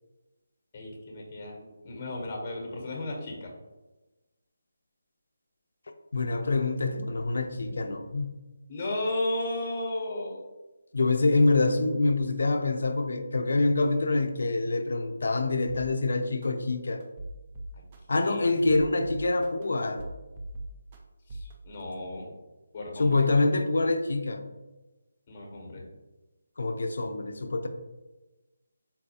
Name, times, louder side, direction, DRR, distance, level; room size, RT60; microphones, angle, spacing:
voice 1, 0.7-3.5 8.7-10.4 18.1-18.7 21.3-22.3 22.7-23.3 25.3-25.8, left 1 dB, 30° left, 0 dB, 0.8 m, -34 dB
voice 2, 6.1-8.3 10.9-17.0 18.1-20.1 23.0-24.5 26.6-27.7, left 2 dB, 70° left, 7 dB, 0.4 m, -26 dB
sound 1, 15.7-15.8 16.4-16.5 17.0-18.0 18.5-19.6 20.0-21.0 21.3-21.5, right 1 dB, 25° right, 0.4 m, -39 dB
4.1 x 2.2 x 2.7 m, 1.1 s
figure-of-eight pair, 165°, 0 cm